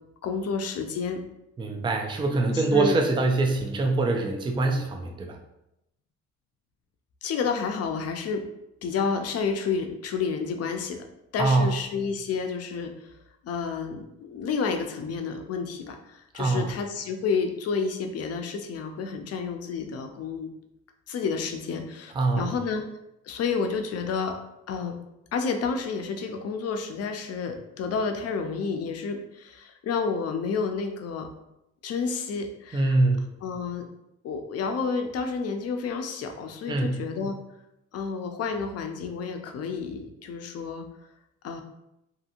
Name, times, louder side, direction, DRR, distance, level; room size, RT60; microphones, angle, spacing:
voice 1, 0.2-1.2 2.5-3.0 7.2-8.4 8.8-11.1 11.3-13.1 13.4-20.5 21.1-22.8 23.2-24.4 24.7-25.0 25.3-31.3 31.8-33.0 33.4-33.9 34.2-37.4 37.9-40.9 41.4-41.6, left 5 dB, 55° left, 5 dB, 0.5 m, -30 dB
voice 2, 1.6-5.4 11.4-11.7 16.3-16.7 22.1-22.5 32.7-33.3 36.7-37.0, right 2 dB, 15° right, 2 dB, 0.4 m, -24 dB
2.7 x 2.7 x 2.5 m, 0.86 s
cardioid pair, 90°, 30 cm